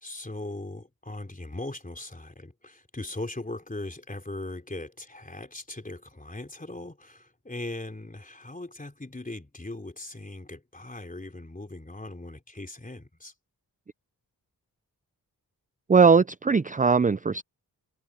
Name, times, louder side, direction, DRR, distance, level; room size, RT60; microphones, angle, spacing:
voice 1, 0.0-13.3, left 2 dB, 20° left, 3.5 m, -39 dB
voice 2, 15.9-17.4, right 5 dB, 20° right, 0.5 m, -20 dB
cardioid pair, 55°, 38 cm